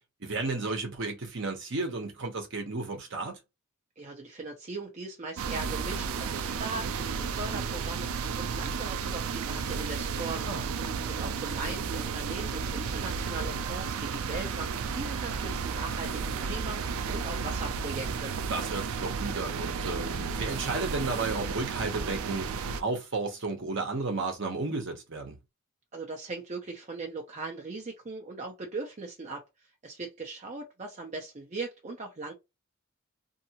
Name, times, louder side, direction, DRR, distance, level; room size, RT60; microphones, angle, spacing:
voice 1, 0.2-3.4 10.4-11.1 18.5-25.4, right 3 dB, 60° right, 0.9 m, -33 dB
voice 2, 4.0-10.5 11.1-18.3 25.9-29.4 29.8-32.3, right 3 dB, 30° right, 0.6 m, -39 dB
sound 1, 5.4-22.8, right 5 dB, 75° right, 0.4 m, -33 dB
2.7 x 2.5 x 2.8 m
head